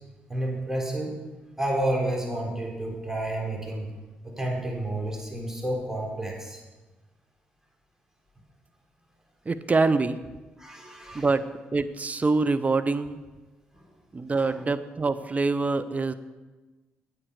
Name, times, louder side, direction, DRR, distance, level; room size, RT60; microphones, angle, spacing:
voice 1, 0.3-1.2 1.6-3.9 4.2-6.6 10.6-11.3 13.7-13.8 14.4-14.6, right 1 dB, 10° right, -1 dB, 3.6 m, -30 dB
voice 2, 9.5-10.2 11.1-13.2 14.1-16.1, right 3 dB, 30° right, 12 dB, 0.6 m, -25 dB
8.8 x 8.7 x 4.8 m, 1.2 s
hypercardioid pair, 40°, 5 cm